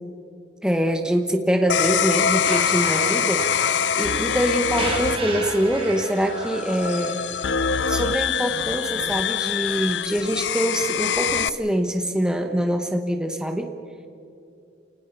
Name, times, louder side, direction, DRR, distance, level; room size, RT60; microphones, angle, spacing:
voice 1, 0.6-3.5 4.0-7.2 7.9-13.7, right 1 dB, 5° right, 5 dB, 1.3 m, -24 dB
sound 1, 1.7-11.5, left 7 dB, 90° left, 0.6 m, -24 dB
sound 2, 2.4-7.4, right 2 dB, 30° right, 3.3 m, -34 dB
29.5 x 19.5 x 5.5 m, 2.6 s
head